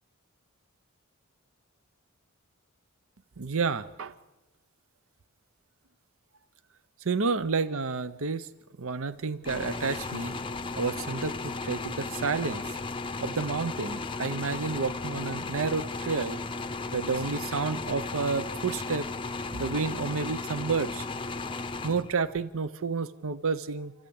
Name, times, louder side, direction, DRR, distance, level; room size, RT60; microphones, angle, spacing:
voice 1, 3.4-4.1 7.0-8.5 8.8-10.4 10.8-12.8 13.2-16.4 16.9-19.1 19.5-21.1 21.8-23.9, right 4 dB, 65° right, 14 dB, 0.7 m, -30 dB
sound 1, 9.4-22.4, left 3 dB, 25° left, 0.6 m, -35 dB
29.0 x 14.5 x 8.7 m, 1.2 s
head